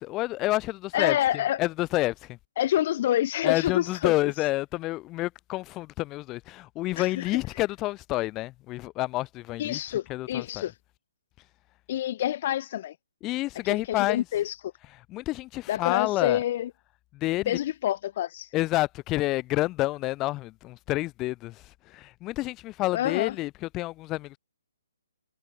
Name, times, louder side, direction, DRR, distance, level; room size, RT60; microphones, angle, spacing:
voice 1, 0.1-1.2 1.6-2.4 3.4-9.8 10.1-10.6 13.2-14.2 15.1-16.4 17.1-17.6 18.5-24.4, left 18 dB, 20° left, 3.2 m, -29 dB
voice 2, 0.9-1.6 2.6-4.1 7.0-7.3 9.6-10.7 11.9-13.0 13.9-14.7 15.7-16.7 17.5-18.5 22.9-23.3, left 12 dB, 45° left, 2.3 m, -27 dB
hypercardioid pair, 145°, 0 cm